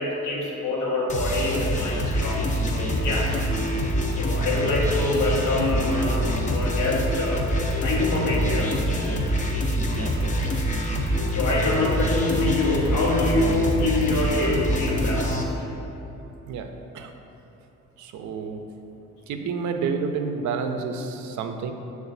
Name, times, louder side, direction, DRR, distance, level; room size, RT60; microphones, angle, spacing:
voice 1, 0.0-3.3 4.2-7.5 7.8-8.8 11.0-15.5, left 2 dB, 80° left, -3 dB, 0.9 m, -25 dB
sound 1, 1.1-15.4, equal, 25° left, 0.5 m, -25 dB
voice 2, 9.9-10.5 16.5-16.7 16.9-17.1 18.0-18.6 19.3-21.7, right 5 dB, 70° right, 6 dB, 0.4 m, -30 dB
5.6 x 2.4 x 3.9 m, 2.9 s
cardioid pair, 90°, 30 cm